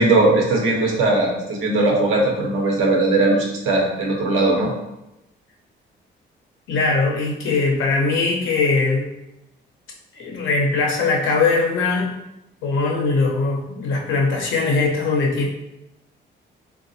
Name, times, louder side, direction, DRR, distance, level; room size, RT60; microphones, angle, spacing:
voice 1, 0.0-4.7, right 2 dB, 85° right, -2 dB, 0.9 m, -19 dB
voice 2, 6.7-9.1 10.1-12.1 12.6-15.5, left 3 dB, 75° left, -1 dB, 0.8 m, -20 dB
3.7 x 2.4 x 2.7 m, 0.90 s
cardioid pair, 90°, 20 cm